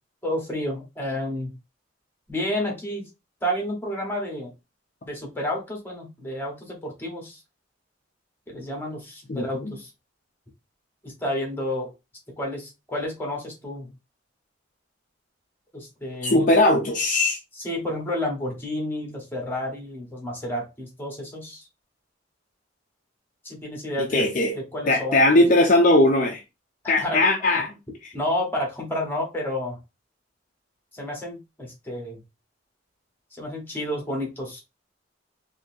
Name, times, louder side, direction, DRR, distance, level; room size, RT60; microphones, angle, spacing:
voice 1, 0.2-1.5 2.3-3.0 3.4-4.5 5.0-7.4 8.5-9.9 11.0-11.9 12.4-13.9 15.7-16.5 17.6-21.6 23.4-24.2 24.5-25.4 27.0-27.2 28.1-29.8 30.9-32.2 33.4-34.6, left 1 dB, 10° left, 1.3 m, -30 dB
voice 2, 9.3-9.7 16.2-17.4 24.0-24.6 24.9-26.4 26.9-27.7, left 1 dB, 45° left, 0.6 m, -19 dB
3.9 x 2.7 x 2.7 m
head